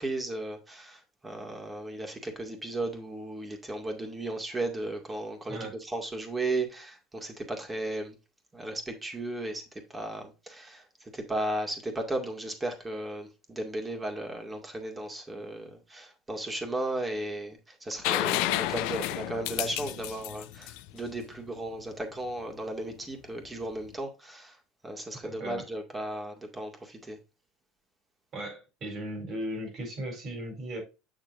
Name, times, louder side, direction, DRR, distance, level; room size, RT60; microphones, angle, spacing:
voice 1, 0.0-8.1 8.5-9.6 9.9-24.6 24.8-27.2, right 2 dB, 20° right, 2.2 m, -35 dB
sound 1, 18.0-21.7 23.6-23.7, left 17 dB, 70° left, 0.4 m, -31 dB
voice 2, 25.2-25.7 28.3-30.8, right 1 dB, 45° right, 3.9 m, -37 dB
7.3 x 6.3 x 2.6 m
hypercardioid pair, 75°, 0 cm